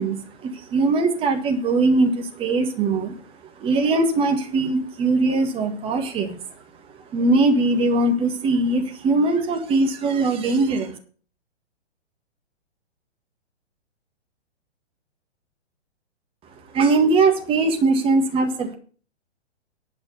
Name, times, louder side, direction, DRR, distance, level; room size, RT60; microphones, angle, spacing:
voice 1, 0.0-3.1 3.6-6.4 7.1-11.0 16.7-18.8, right 3 dB, 15° right, 5 dB, 1.7 m, -21 dB
11.0 x 6.4 x 7.9 m, 0.41 s
figure-of-eight pair, 120°, 34 cm